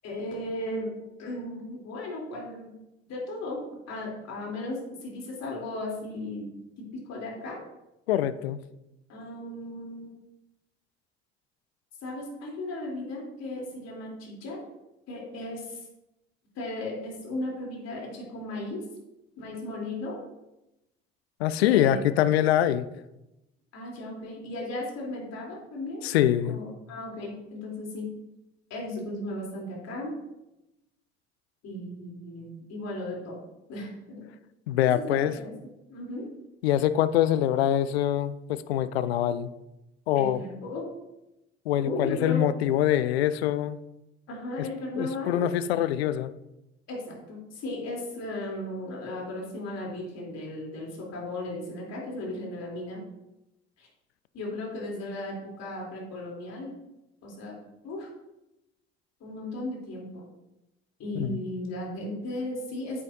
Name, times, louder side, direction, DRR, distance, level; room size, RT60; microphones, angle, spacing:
voice 1, 0.0-0.9 1.2-2.7 3.1-3.6 3.9-6.5 6.8-7.6 9.1-10.1 12.0-14.6 15.1-15.8 16.5-18.8 19.4-20.2 21.6-22.0 23.7-26.0 26.4-28.1 28.7-30.1 31.6-33.4 33.7-34.2 34.9-35.5 35.9-36.3 40.1-40.9 41.8-42.5 44.3-45.6 46.9-53.0 53.8-53.9 54.3-56.7 57.2-57.5 57.8-58.1 59.2-60.2 61.0-63.0, left 1 dB, 55° left, -2 dB, 3.2 m, -36 dB
voice 2, 8.1-8.6 21.4-22.9 26.0-26.6 34.7-35.3 36.6-39.5 40.1-40.4 41.7-43.8 45.0-46.3 61.1-61.4, left 11 dB, 80° left, 15 dB, 0.5 m, -24 dB
9.5 x 8.8 x 2.6 m, 0.91 s
figure-of-eight pair, 45°, 31 cm